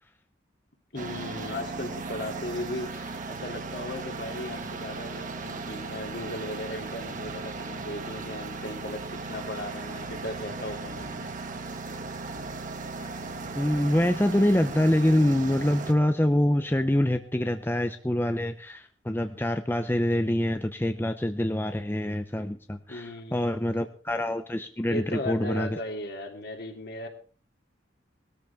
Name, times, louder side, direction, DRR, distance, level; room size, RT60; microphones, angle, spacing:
voice 1, 0.9-11.3 22.9-23.6 24.9-27.1, left 1 dB, 55° left, 4 dB, 2.8 m, -37 dB
sound 1, 1.0-15.9, right 3 dB, 40° right, 1.7 m, -37 dB
sound 2, 12.8-17.9, right 4 dB, 80° left, 4.0 m, -55 dB
voice 2, 13.5-25.7, left 1 dB, 10° left, 8 dB, 0.6 m, -25 dB
20.0 x 13.5 x 3.4 m, 0.41 s
head